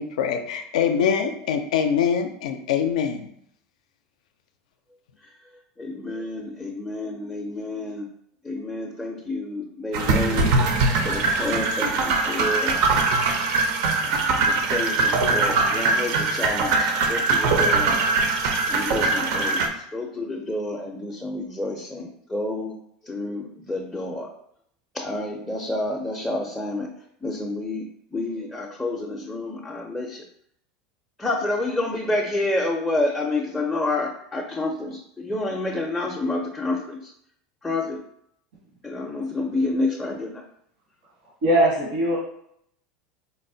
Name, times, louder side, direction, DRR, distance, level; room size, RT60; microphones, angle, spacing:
voice 1, 0.0-3.3, left 7 dB, 90° left, 7 dB, 0.4 m, -24 dB
voice 2, 5.8-8.1 8.4-10.5 11.0-12.8 14.0-14.2 14.5-18.0 18.7-22.8 23.0-24.3 24.9-26.9 27.2-27.8 28.1-30.2 31.2-37.0 37.6-38.0 38.8-40.4, left 2 dB, 10° left, -1 dB, 0.4 m, -29 dB
sound 1, 9.9-19.7, right 3 dB, 65° right, 0.5 m, -22 dB
voice 3, 41.4-42.2, right 1 dB, 80° right, -6 dB, 1.1 m, -20 dB
4.0 x 2.1 x 2.6 m, 0.71 s
supercardioid pair, 120°, 4 cm